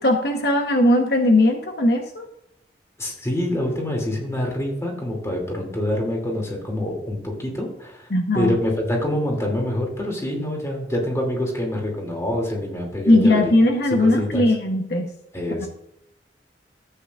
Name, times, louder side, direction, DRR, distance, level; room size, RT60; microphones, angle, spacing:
voice 1, 0.0-2.3 8.1-8.6 13.1-15.1 15.6-15.7, left 1 dB, 65° left, 3 dB, 1.0 m, -19 dB
voice 2, 3.0-8.1 8.3-13.5 13.9-14.5 15.3-15.7, left 1 dB, 15° left, 0 dB, 2.6 m, -26 dB
13.5 x 8.7 x 2.4 m, 0.80 s
head